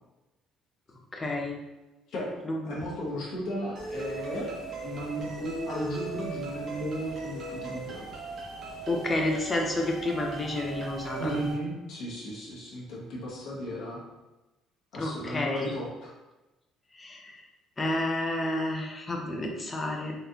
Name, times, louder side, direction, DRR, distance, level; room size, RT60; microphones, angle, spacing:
voice 1, 1.1-1.6 2.5-2.6 8.9-11.3 15.0-15.7 17.0-17.4 17.8-20.2, left 2 dB, 15° left, 1 dB, 0.6 m, -30 dB
voice 2, 2.7-4.5 4.8-8.1 11.2-14.0 14.9-16.1, equal, 65° left, -4 dB, 1.4 m, -35 dB
sound 1, 3.7-11.5, right 3 dB, 40° right, 1.0 m, -38 dB
4.2 x 3.2 x 2.7 m, 1.0 s
cardioid pair, 160°, 0 cm